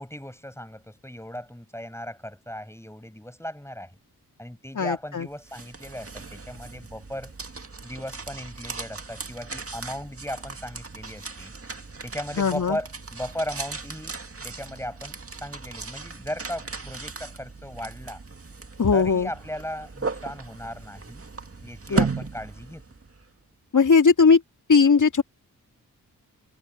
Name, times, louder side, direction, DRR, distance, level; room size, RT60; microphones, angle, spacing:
voice 1, 0.0-4.0 4.4-7.3 7.8-11.5 12.0-14.2 14.4-18.2 18.9-21.2 21.6-22.8, equal, 5° left, 6.3 m, -37 dB
voice 2, 4.8-5.3 12.4-12.8 18.8-19.3 21.9-22.0 23.7-24.4 24.7-25.2, left 5 dB, 50° left, 2.6 m, -18 dB
sound 1, 5.2-23.2, right 4 dB, 35° right, 2.1 m, -36 dB
supercardioid pair, 40°, 38 cm